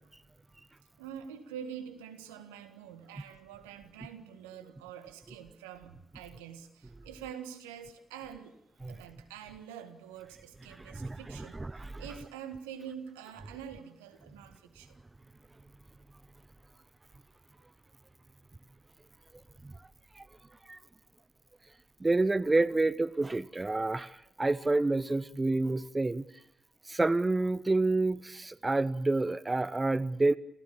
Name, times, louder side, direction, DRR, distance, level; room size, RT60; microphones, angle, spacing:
voice 1, 1.0-8.6 8.9-11.6 12.0-15.0, right 8 dB, 90° right, 1.9 m, -46 dB
voice 2, 10.8-11.2 11.5-12.0 19.6-19.7 20.2-20.3 20.7-20.8 22.0-26.2 26.9-30.4, right 2 dB, 25° right, 1.1 m, -28 dB
28.5 x 16.0 x 8.7 m
hypercardioid pair, 40°, 0 cm